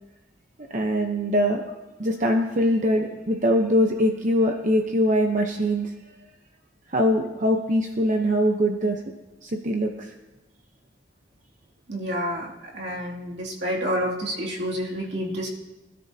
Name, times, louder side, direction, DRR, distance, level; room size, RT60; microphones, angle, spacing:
voice 1, 0.7-1.6 2.0-5.9 6.9-9.0 9.4-10.1, equal, 45° right, 3 dB, 0.9 m, -22 dB
voice 2, 11.9-15.5, equal, 70° right, -3 dB, 2.7 m, -29 dB
24.5 x 13.0 x 2.8 m, 1.1 s
head